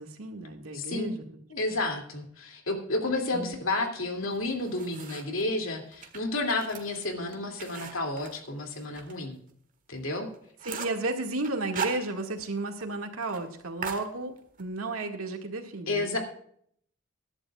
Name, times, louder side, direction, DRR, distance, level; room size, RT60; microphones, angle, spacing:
voice 1, 0.0-1.4 1.7-1.8 3.3-3.6 10.6-16.2, right 2 dB, 80° right, 3 dB, 2.1 m, -33 dB
voice 2, 0.7-1.1 1.5-9.4 9.9-10.3 15.9-16.2, left 2 dB, 70° left, 3 dB, 2.7 m, -31 dB
sound 1, 4.3-5.4 5.9-9.1 9.5-9.6 10.0-10.1 10.3-11.1 11.4-12.5 12.8-12.9 13.2-13.4 13.8-14.7, right 6 dB, 40° right, 1.7 m, -39 dB
21.5 x 11.5 x 2.4 m, 0.63 s
head